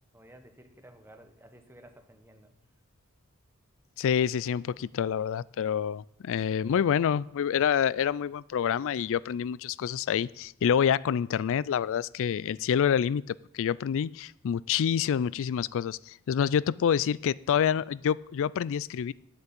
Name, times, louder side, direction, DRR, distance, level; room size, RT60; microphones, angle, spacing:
voice 1, 0.1-2.5, right 1 dB, 10° right, 6 dB, 1.2 m, -54 dB
voice 2, 4.0-19.1, left 8 dB, 60° left, 22 dB, 0.3 m, -27 dB
8.2 x 7.9 x 8.8 m, 0.80 s
head